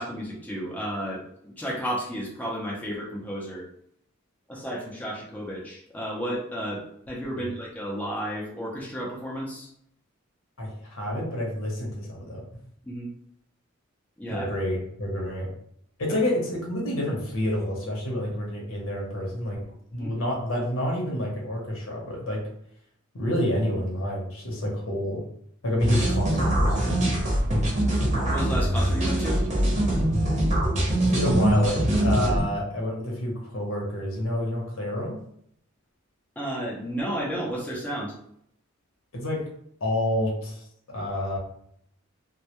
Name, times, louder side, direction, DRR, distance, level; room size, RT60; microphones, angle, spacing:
voice 1, 0.0-3.7 4.5-9.7 12.8-13.1 14.2-14.5 20.0-20.1 28.3-29.4 36.4-38.1, equal, 5° left, -5 dB, 0.5 m, -32 dB
voice 2, 10.6-12.4 14.3-15.5 16.0-19.6 19.9-22.5 23.1-25.2 25.6-27.0 31.0-35.2 39.1-39.4 39.8-41.4, left 1 dB, 75° left, -1 dB, 0.8 m, -28 dB
sound 1, 25.8-32.5, right 1 dB, 35° right, 0.7 m, -23 dB
2.2 x 2.1 x 2.8 m, 0.69 s
head